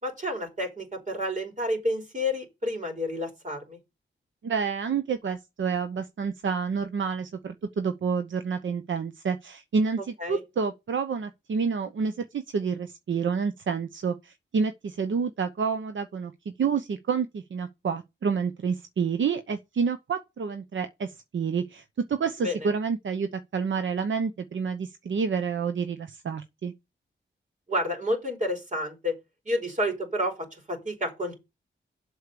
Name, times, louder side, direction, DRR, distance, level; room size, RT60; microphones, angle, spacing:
voice 1, 0.0-3.8 10.2-10.4 22.4-22.6 27.7-29.1 29.5-30.3 30.7-31.4, left 1 dB, 40° right, 4.9 m, -29 dB
voice 2, 4.4-16.3 16.6-26.7, right 5 dB, 75° right, 0.9 m, -29 dB
8.1 x 6.4 x 6.9 m
wide cardioid pair, 125°, 20 cm